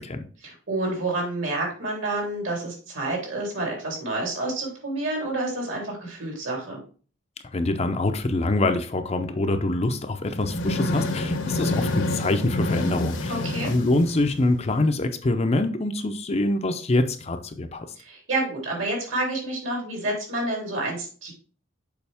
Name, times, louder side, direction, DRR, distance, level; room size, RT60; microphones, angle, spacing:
voice 1, 0.4-6.8 13.3-13.7 18.0-21.3, right 2 dB, 70° right, -1 dB, 3.4 m, -29 dB
voice 2, 7.5-17.9, left 2 dB, 30° left, 7 dB, 0.5 m, -25 dB
sound 1, 10.3-14.8, left 1 dB, 65° left, 0.9 m, -28 dB
6.9 x 5.1 x 3.4 m, 0.39 s
head